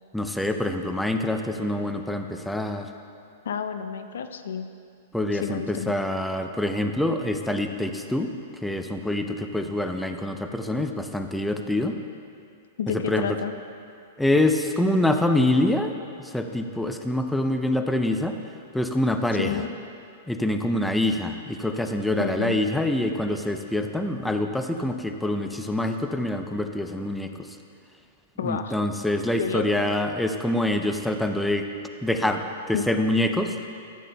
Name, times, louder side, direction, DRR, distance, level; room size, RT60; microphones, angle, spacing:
voice 1, 0.1-2.9 5.1-8.3 8.6-12.0 12.9-13.4 14.2-15.9 16.2-18.4 18.7-19.5 20.3-27.5 28.4-31.7 32.0-33.5, left 1 dB, 5° left, 6 dB, 0.4 m, -25 dB
voice 2, 3.4-4.7 5.3-5.9 12.8-13.5 19.4-19.7 22.2-22.6 28.4-28.7 29.4-29.9 32.7-32.8, left 7 dB, 75° left, 9 dB, 0.5 m, -30 dB
13.5 x 8.3 x 2.3 m, 2.4 s
hypercardioid pair, 120°, 0 cm